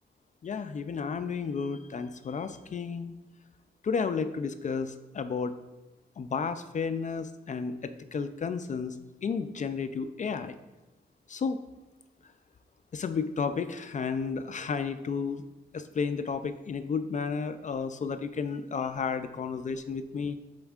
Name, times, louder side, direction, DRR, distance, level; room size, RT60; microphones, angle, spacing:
voice 1, 0.4-3.1 3.8-5.5 6.2-9.0 9.2-10.6 11.3-11.6 12.9-15.5 15.7-20.4, left 5 dB, 45° left, 10 dB, 0.4 m, -32 dB
10.5 x 4.4 x 2.4 m, 1.1 s
wide cardioid pair, 125°, 18 cm